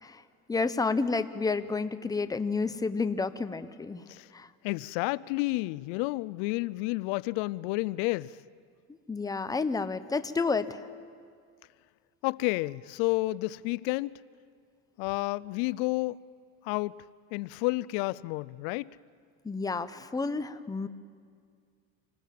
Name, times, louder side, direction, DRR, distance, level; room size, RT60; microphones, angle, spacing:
voice 1, 0.5-4.0 4.3-4.5 9.1-10.9 19.4-20.9, left 4 dB, 10° left, 0.8 m, -30 dB
voice 2, 4.6-8.4 12.2-14.2 15.0-16.2 16.6-17.0 17.3-18.9, left 21 dB, 85° left, 0.5 m, -30 dB
26.5 x 19.5 x 7.6 m
cardioid pair, 120°, 34 cm